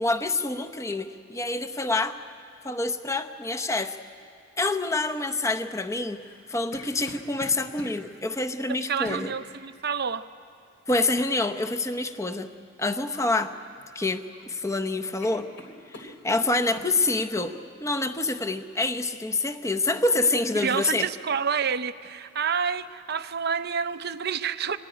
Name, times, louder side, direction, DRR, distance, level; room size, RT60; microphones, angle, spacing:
voice 1, 0.0-2.2 2.6-4.0 4.6-6.2 6.5-9.3 10.9-12.5 12.8-13.5 13.9-15.5 15.9-17.5 17.8-21.1, left 2 dB, 15° left, 7 dB, 0.8 m, -27 dB
sound 1, 6.2-8.0 9.0-9.3 10.9-11.1 13.1-13.4 13.8-14.4 14.7-14.9 15.2-16.9 17.4-17.5, left 1 dB, 75° left, 3.2 m, -44 dB
voice 2, 8.7-10.3 20.5-24.8, right 6 dB, 55° right, 11 dB, 0.7 m, -28 dB
25.5 x 18.5 x 9.9 m, 2.3 s
head